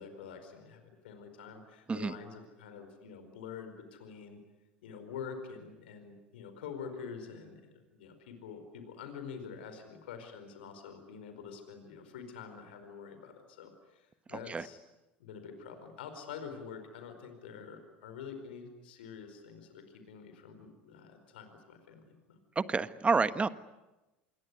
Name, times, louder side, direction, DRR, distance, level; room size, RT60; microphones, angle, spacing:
voice 1, 0.0-4.4 4.8-14.8 15.2-22.4, left 6 dB, 75° left, 7 dB, 4.7 m, -46 dB
voice 2, 22.5-23.5, right 4 dB, 20° right, 14 dB, 1.4 m, -28 dB
27.5 x 22.0 x 9.8 m, 1.0 s
hypercardioid pair, 75°, 6 cm